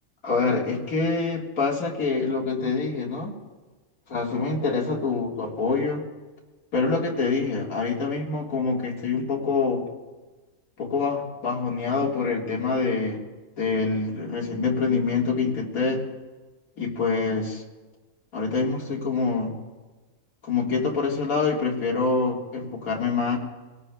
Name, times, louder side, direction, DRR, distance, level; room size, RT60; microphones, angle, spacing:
voice 1, 0.2-3.4 4.1-6.1 6.7-9.9 10.8-13.2 13.6-16.0 16.8-17.6 18.3-19.5 20.4-23.4, left 4 dB, 85° left, -3 dB, 2.2 m, -25 dB
27.0 x 17.5 x 2.2 m, 1.3 s
omnidirectional pair, 1.5 m